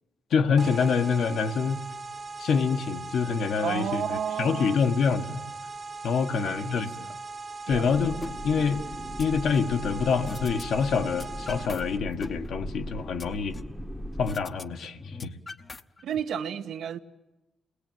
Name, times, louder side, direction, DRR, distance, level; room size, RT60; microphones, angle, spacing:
voice 1, 0.3-1.8 2.4-5.4 6.0-6.9 7.7-8.2 8.4-8.8 9.2-13.5 14.2-15.3, left 5 dB, 70° left, 1.6 m, -26 dB
sound 1, 0.6-12.0, right 3 dB, 35° right, 0.9 m, -39 dB
voice 2, 3.6-4.8 6.3-7.2 7.7-7.9 16.0-17.0, right 8 dB, 75° right, 1.3 m, -32 dB
sound 2, 7.7-14.3, equal, ahead, 1.0 m, -38 dB
sound 3, 8.2-8.3 8.7-9.8 10.3-10.6 10.9-11.8 12.1-13.8 14.3-14.6 14.9-16.2, left 3 dB, 30° left, 0.9 m, -41 dB
29.0 x 20.5 x 9.3 m
cardioid pair, 115°, 0 cm